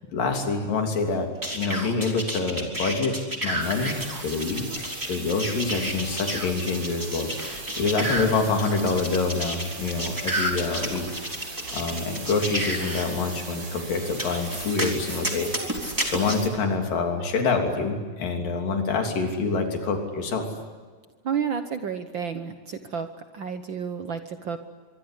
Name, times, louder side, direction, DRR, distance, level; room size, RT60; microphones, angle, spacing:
voice 1, 0.1-11.1 11.7-20.5, left 4 dB, 90° left, 3 dB, 4.8 m, -26 dB
sound 1, 1.4-13.0 14.2-16.3, right 1 dB, 5° right, 3.3 m, -31 dB
sound 2, 3.6-16.5, right 3 dB, 30° right, 4.0 m, -39 dB
voice 2, 21.2-23.1 23.3-24.6, right 7 dB, 75° right, 8 dB, 1.1 m, -30 dB
24.5 x 24.0 x 9.9 m, 1.4 s
omnidirectional pair, 3.8 m